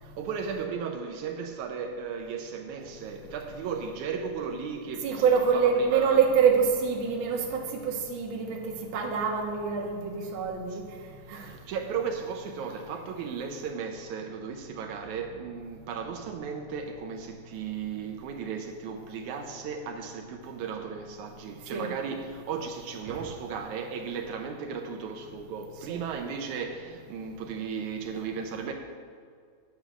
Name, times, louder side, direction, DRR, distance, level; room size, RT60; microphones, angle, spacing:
voice 1, 0.0-6.2 10.7-10.8 11.2-28.7, right 6 dB, 80° right, 4 dB, 2.1 m, -35 dB
voice 2, 5.0-10.8 11.3-11.5 21.7-21.9 23.1-23.3 25.9-26.0, right 6 dB, 50° right, 0 dB, 1.8 m, -26 dB
9.2 x 9.0 x 6.1 m, 2.1 s
omnidirectional pair, 3.4 m